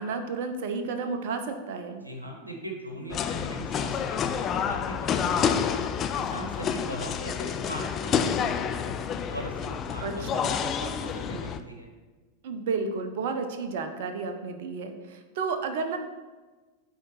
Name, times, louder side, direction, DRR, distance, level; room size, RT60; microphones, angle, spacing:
voice 1, 0.0-2.0 10.0-10.5 12.4-16.0, right 4 dB, 50° right, 7 dB, 0.7 m, -32 dB
voice 2, 2.0-5.8 6.2-8.9 9.3-11.9, right 1 dB, 80° right, 2 dB, 1.1 m, -40 dB
sound 1, 3.1-11.6, left 7 dB, 30° left, 0.4 m, -29 dB
8.9 x 3.7 x 4.5 m, 1.3 s
figure-of-eight pair, 90°, 0 cm